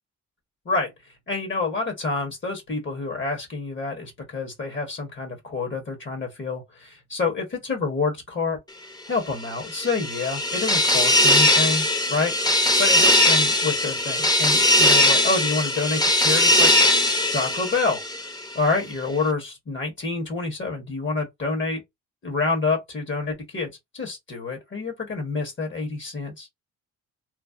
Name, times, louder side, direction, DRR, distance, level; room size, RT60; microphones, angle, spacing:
voice 1, 1.3-8.6 9.1-16.7 17.0-18.0 18.5-21.8 22.2-26.5, left 3 dB, 40° left, 1.4 m, -28 dB
sound 1, 9.4-18.6, left 1 dB, 15° left, 0.8 m, -20 dB
3.2 x 2.0 x 2.5 m
cardioid pair, 90°, 30 cm